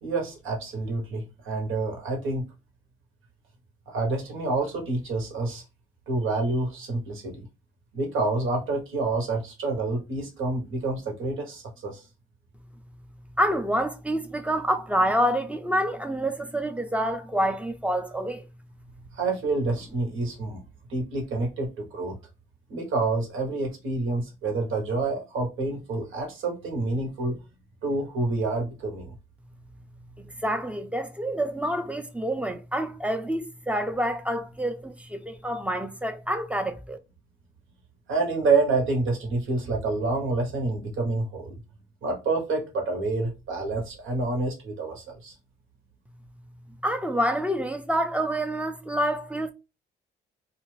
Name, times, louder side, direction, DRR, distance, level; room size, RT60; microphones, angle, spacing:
voice 1, 0.0-2.4 3.9-5.6 6.1-7.5 7.9-12.0 19.1-20.6 20.9-22.2 22.7-27.4 27.8-29.1 38.1-41.6 42.0-45.3, right 3 dB, 80° right, 1.0 m, -28 dB
voice 2, 13.4-18.4 30.4-37.0 46.8-49.5, equal, 5° right, 0.4 m, -27 dB
2.4 x 2.4 x 3.1 m
cardioid pair, 90°, 20 cm